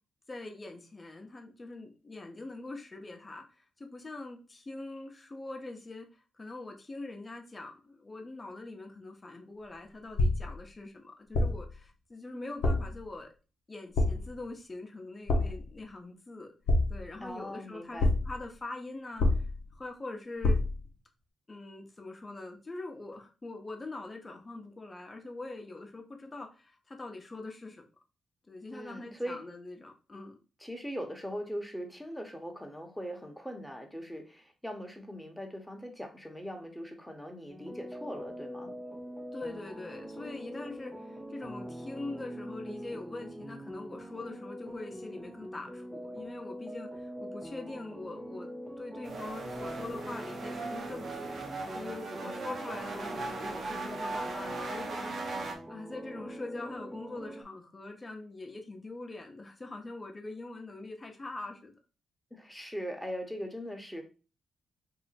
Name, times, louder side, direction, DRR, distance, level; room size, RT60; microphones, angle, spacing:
voice 1, 0.3-13.3 13.7-16.5 16.9-19.2 19.7-20.6 21.5-27.8 28.5-30.4 39.3-48.5 48.8-61.7, left 2 dB, 30° left, 2 dB, 0.8 m, -43 dB
sound 1, 10.1-10.6 11.3-11.7 12.6-13.0 13.9-14.4 15.3-15.7 16.7-17.2 18.0-18.4 19.2-19.7 20.4-20.9, left 2 dB, 75° left, 0.8 m, -27 dB
voice 2, 17.2-18.1 28.7-29.4 30.6-38.7 52.1-52.6 62.3-64.0, equal, 5° left, 3 dB, 1.0 m, -40 dB
sound 2, 37.5-57.4, equal, 15° right, 0.4 m, -43 dB
sound 3, 49.0-55.6, right 3 dB, 65° right, 0.7 m, -39 dB
2.7 x 2.1 x 4.1 m, 0.34 s
supercardioid pair, 55°, 0 cm